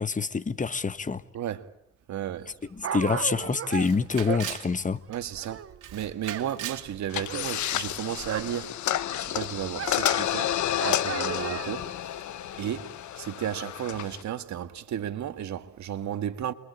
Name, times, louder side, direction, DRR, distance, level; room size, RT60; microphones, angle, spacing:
voice 1, 0.0-1.2 2.9-5.0, left 4 dB, 25° left, 1.3 m, -26 dB
voice 2, 1.3-1.7 2.1-2.5 5.1-5.7 5.9-12.2 12.6-16.5, right 10 dB, 70° right, 1.9 m, -34 dB
Dog, 2.4-6.5 6.7-8.7 9.0-11.9 12.5-12.6, right 9 dB, 50° right, 1.0 m, -37 dB
Camera, 2.6-2.7 3.0-3.1 3.7-4.7 5.1-5.5 5.8-6.9, right 12 dB, 85° right, 2.4 m, -39 dB
sound 1, 7.1-14.2, left 11 dB, 75° left, 1.5 m, -30 dB
29.0 x 23.0 x 8.6 m
cardioid pair, 90°, 30 cm